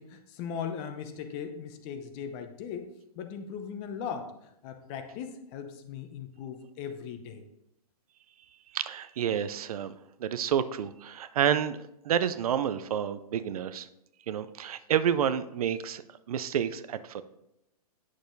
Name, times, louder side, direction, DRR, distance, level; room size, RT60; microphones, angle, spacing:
voice 1, 0.0-2.9 3.1-4.3 4.6-7.4, left 7 dB, 30° left, 8 dB, 0.7 m, -38 dB
voice 2, 8.7-9.9 10.2-11.8 12.0-13.9 14.3-16.0 16.3-17.2, right 9 dB, 65° right, 13 dB, 0.4 m, -29 dB
8.3 x 6.3 x 2.6 m, 0.83 s
hypercardioid pair, 130°, 20 cm